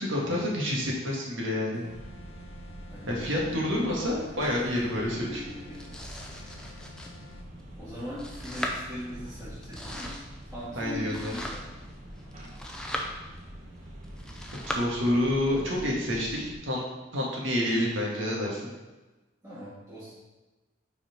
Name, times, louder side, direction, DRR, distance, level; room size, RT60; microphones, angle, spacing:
voice 1, 0.0-1.8 3.1-5.4 10.8-11.3 14.5-16.8 17.1-18.7, left 1 dB, 75° right, -3 dB, 1.7 m, -28 dB
sound 1, 1.7-7.5, left 2 dB, 65° left, 0.6 m, -53 dB
sound 2, 1.9-16.5, equal, 35° right, 1.1 m, -45 dB
voice 2, 2.9-3.3 5.3-6.0 6.2-6.5 7.8-10.1 10.5-11.7 19.4-20.1, equal, 15° right, -15 dB, 2.3 m, -40 dB
Domestic sounds home sounds, 4.4-14.8, equal, 5° left, 0.5 m, -40 dB
5.6 x 4.3 x 5.0 m, 1.1 s
head